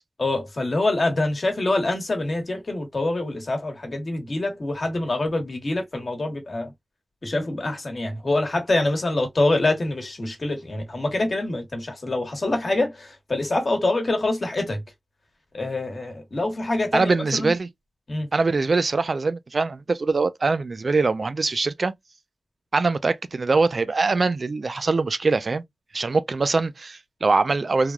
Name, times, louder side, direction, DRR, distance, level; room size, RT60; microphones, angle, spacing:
voice 1, 0.2-6.7 7.2-14.8 15.5-17.5 18.1-18.3, left 2 dB, 55° left, 1.2 m, -25 dB
voice 2, 16.9-17.7 18.3-21.9 22.7-25.6 25.9-27.9, right 3 dB, 60° right, 0.3 m, -23 dB
3.2 x 2.2 x 2.3 m
wide cardioid pair, 60°, 0 cm